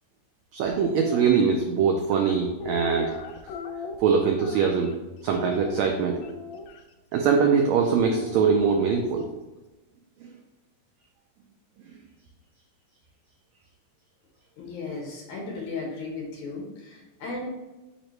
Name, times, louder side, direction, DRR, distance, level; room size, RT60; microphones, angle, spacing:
voice 1, 0.5-3.2 4.0-4.9 5.2-6.2 7.1-9.3, right 6 dB, 85° right, 2 dB, 1.5 m, -22 dB
sound 1, 0.7-1.3 2.0-5.0 5.3-6.8 8.0-9.4, left 4 dB, 90° left, 1.5 m, -38 dB
voice 2, 14.6-17.5, left 3 dB, 65° left, -2 dB, 2.7 m, -35 dB
9.0 x 3.2 x 3.2 m, 1.1 s
omnidirectional pair, 3.8 m